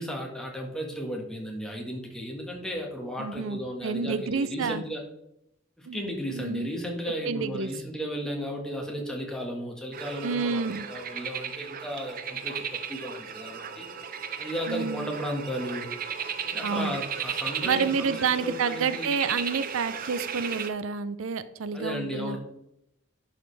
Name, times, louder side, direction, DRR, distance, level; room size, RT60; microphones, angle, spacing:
voice 1, 0.0-5.0 5.8-13.9 14.4-15.9 16.5-19.1 21.7-22.4, equal, 5° left, -1 dB, 1.6 m, -35 dB
voice 2, 3.2-4.8 5.9-6.0 6.3-6.7 7.2-7.7 10.2-10.9 14.7-15.1 16.6-17.0 17.6-22.4, right 5 dB, 90° right, 14 dB, 0.5 m, -29 dB
sound 1, 9.9-20.7, right 7 dB, 45° right, 0.6 m, -35 dB
11.0 x 5.0 x 3.4 m, 0.80 s
head